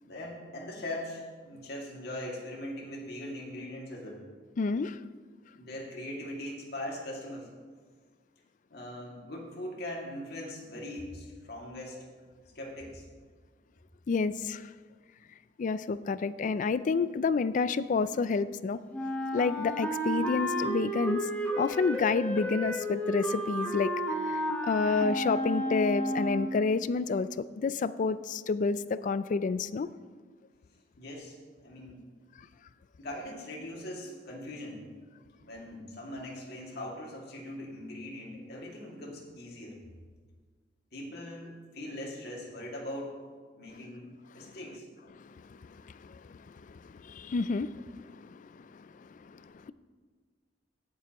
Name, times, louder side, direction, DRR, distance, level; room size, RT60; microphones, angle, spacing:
voice 1, 0.0-4.2 5.5-7.5 8.7-12.1 12.5-13.1 31.0-31.4 31.6-32.1 33.0-34.9 35.4-39.8 40.9-43.2 43.6-44.9, left 1 dB, 60° left, -2 dB, 2.3 m, -41 dB
voice 2, 4.6-5.0 14.1-14.7 15.6-18.8 19.3-21.3 21.6-23.9 24.2-29.9 45.1-49.7, left 4 dB, 45° left, 15 dB, 0.3 m, -30 dB
Wind instrument woodwind instrument, 18.9-26.6, equal, 10° left, 1.0 m, -32 dB
16.5 x 7.5 x 3.0 m, 1.5 s
head